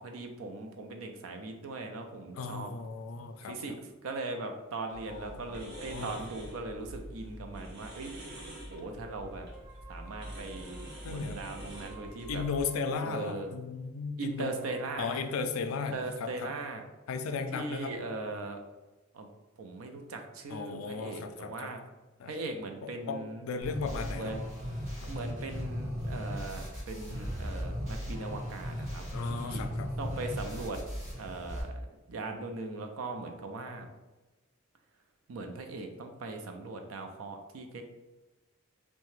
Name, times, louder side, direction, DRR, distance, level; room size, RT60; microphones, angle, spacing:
voice 1, 0.0-2.7 3.4-3.8 4.0-8.1 8.7-9.5 9.9-12.4 13.0-13.5 14.2-15.2 15.9-16.8 17.5-18.6 19.1-19.3 19.6-21.8 22.3-23.4 24.2-24.4 25.1-29.6 30.0-30.8 31.2-31.8 32.1-33.9 35.3-37.9, right 3 dB, 85° right, 5 dB, 0.4 m, -39 dB
voice 2, 2.4-3.8 5.1-6.2 11.0-11.4 12.3-14.6 15.0-16.5 17.1-17.9 20.5-21.7 22.2-22.4 23.1-24.3 25.0-25.1 29.1-29.9, left 4 dB, 90° left, 7 dB, 0.3 m, -36 dB
sound 1, 4.9-12.6, equal, 55° right, 0.8 m, -45 dB
sound 2, 6.3-8.4 8.7-13.6 14.3-16.9, right 4 dB, 10° right, 0.4 m, -57 dB
sound 3, 23.6-31.6, equal, 35° right, 1.1 m, -37 dB
2.8 x 2.2 x 3.1 m, 1.1 s
head